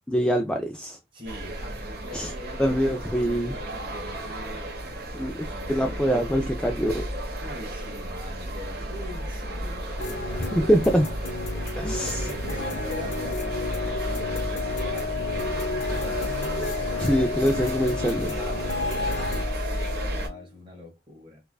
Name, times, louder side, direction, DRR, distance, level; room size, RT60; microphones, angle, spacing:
voice 1, 0.1-1.0 2.1-2.3 2.6-3.6 5.1-7.1 10.5-11.1 11.8-12.3 17.0-18.3, equal, 5° left, 0.3 m, -24 dB
voice 2, 1.1-6.1 7.4-10.9 11.5-16.3 18.4-21.4, left 1 dB, 25° right, 1.6 m, -43 dB
sound 1, 1.3-20.3, right 1 dB, 55° right, 1.2 m, -33 dB
sound 2, 10.0-19.4, left 2 dB, 90° left, 1.2 m, -33 dB
Wind instrument woodwind instrument, 12.6-20.5, left 7 dB, 55° left, 0.6 m, -34 dB
4.6 x 2.4 x 2.3 m
head